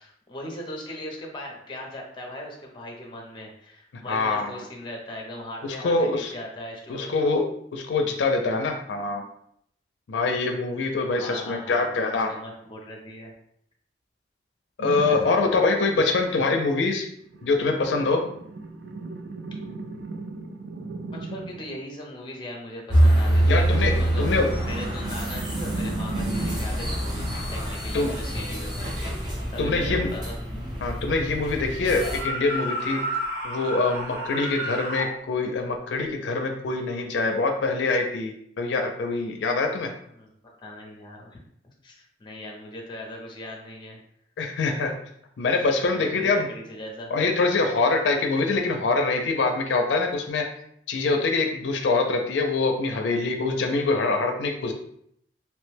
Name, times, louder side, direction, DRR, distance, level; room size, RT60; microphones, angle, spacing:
voice 1, 0.0-7.2 11.1-13.3 14.8-15.5 16.0-16.2 21.1-30.4 40.2-40.3 40.6-41.4 41.8-44.0 44.8-44.9 45.5-47.1, left 1 dB, 25° left, 0 dB, 0.5 m, -39 dB
voice 2, 4.1-4.5 5.8-6.3 6.9-7.4 7.7-9.2 10.1-12.3 14.8-17.0 17.4-18.2 23.5-23.9 24.2-24.5 27.9-28.1 29.6-30.1 30.8-33.0 33.4-38.3 38.6-39.9 44.4-44.9 45.4-46.5 47.1-50.4 50.9-54.7, left 3 dB, 85° left, 4 dB, 0.4 m, -24 dB
sound 1, 14.8-15.6 17.3-21.8 23.3-26.8, right 3 dB, 80° right, 0.4 m, -36 dB
sound 2, 22.9-32.2, right 1 dB, 25° right, 0.6 m, -25 dB
sound 3, 31.7-35.1, equal, 60° right, 1.0 m, -31 dB
3.0 x 2.1 x 3.2 m, 0.70 s
head